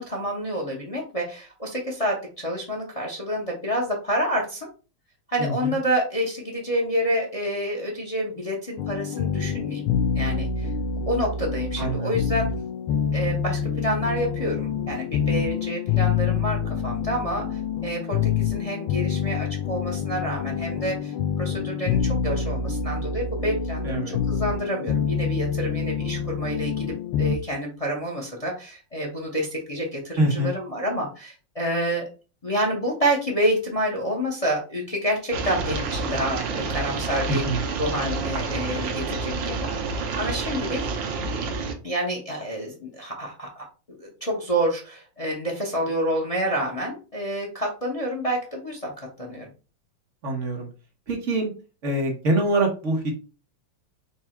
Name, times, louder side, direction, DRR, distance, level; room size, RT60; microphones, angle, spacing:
voice 1, 0.0-4.7 5.3-9.9 10.1-10.7 11.1-12.5 13.1-32.1 32.4-37.4 37.8-40.9 41.8-43.7 44.0-49.5, equal, 45° left, 0 dB, 0.4 m, -28 dB
voice 2, 5.4-5.7 11.8-12.2 23.8-24.2 30.2-30.5 37.3-37.6 50.2-50.7 51.1-51.5 51.8-53.1, right 2 dB, 45° right, 1 dB, 1.1 m, -24 dB
sound 1, 8.8-27.4, left 6 dB, 90° left, 1.5 m, -27 dB
sound 2, 35.3-41.7, right 4 dB, 65° right, 1.4 m, -29 dB
4.6 x 2.4 x 4.3 m, 0.34 s
omnidirectional pair, 2.3 m